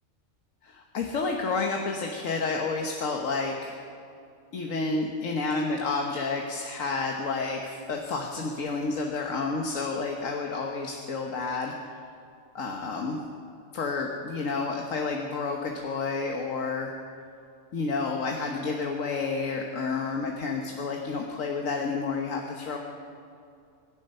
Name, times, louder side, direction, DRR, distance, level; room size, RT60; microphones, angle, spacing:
voice 1, 0.9-3.8 4.5-11.7 12.5-13.2 13.7-17.0 17.7-22.8, left 4 dB, 90° left, 1 dB, 1.6 m, -30 dB
23.5 x 10.5 x 5.6 m, 2.5 s
omnidirectional pair, 1.3 m